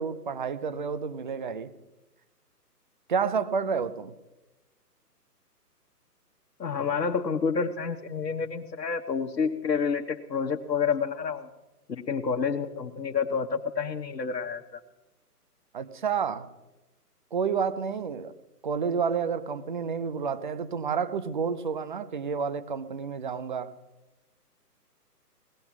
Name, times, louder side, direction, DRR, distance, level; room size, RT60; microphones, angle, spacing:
voice 1, 0.0-1.7 3.1-4.1 15.7-16.5 17.3-18.3 18.6-23.7, right 6 dB, 30° right, 15 dB, 0.6 m, -30 dB
voice 2, 6.6-11.5 11.9-14.8, left 5 dB, 85° left, 1 dB, 1.4 m, -29 dB
18.5 x 13.5 x 5.9 m, 1.0 s
hypercardioid pair, 150°, 48 cm